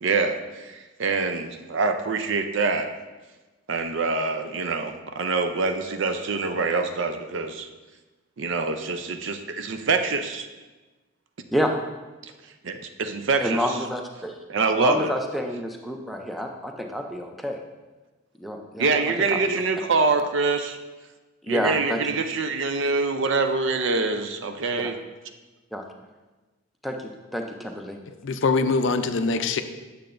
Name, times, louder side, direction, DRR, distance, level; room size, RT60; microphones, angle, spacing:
voice 1, 0.0-2.9 3.7-7.7 8.4-10.5 12.2-12.3 12.6-13.8 14.5-15.1 18.8-20.8 21.5-25.0, right 4 dB, 60° right, 7 dB, 0.5 m, -25 dB
voice 2, 13.4-14.3 14.8-17.6 18.4-19.0 19.3-19.6 21.4-22.2 24.8-24.9 25.7-25.8 26.8-28.0, equal, ahead, 2 dB, 0.4 m, -29 dB
voice 3, 28.1-29.6, left 4 dB, 60° left, 9 dB, 0.4 m, -23 dB
8.6 x 6.7 x 2.5 m, 1.2 s
head